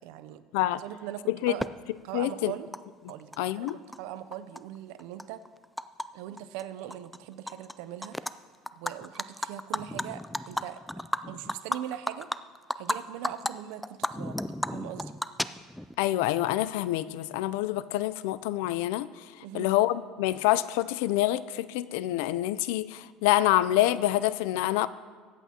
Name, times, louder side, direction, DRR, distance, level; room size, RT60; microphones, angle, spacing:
voice 1, 0.0-0.4 0.7-1.7 2.0-2.7 3.1-5.4 6.1-8.2 8.8-10.8 11.3-12.3 12.8-14.4 14.7-15.1 19.4-19.7, right 12 dB, 80° right, 13 dB, 0.5 m, -40 dB
Animal, 1.6-1.7 2.7-2.8 3.1-4.0 4.3-6.1 6.4-6.6 6.9-7.7 8.0-8.3 8.7-13.0 13.2-13.5 13.8-15.9, left 1 dB, 5° left, 0.3 m, -33 dB
voice 2, 2.1-2.5 3.4-3.8 16.0-19.1 19.5-24.9, left 14 dB, 85° left, 16 dB, 0.4 m, -26 dB
23.0 x 8.3 x 2.8 m, 1.6 s
cardioid pair, 125°, 0 cm